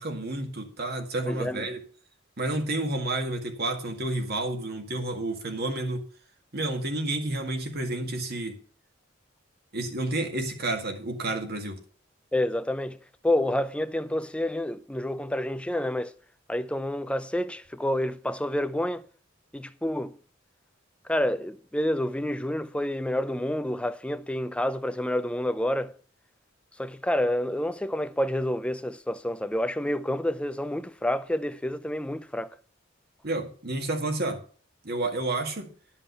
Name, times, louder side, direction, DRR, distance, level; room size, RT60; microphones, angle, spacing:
voice 1, 0.0-1.8 2.4-6.0 6.5-8.6 9.7-11.8 33.2-34.4 34.8-35.7, right 2 dB, 55° right, 1.9 m, -30 dB
voice 2, 1.2-1.7 12.3-13.0 13.2-16.1 16.5-19.0 19.5-20.1 21.1-25.9 26.8-32.6, left 1 dB, 5° left, 0.5 m, -28 dB
11.5 x 5.5 x 6.9 m
head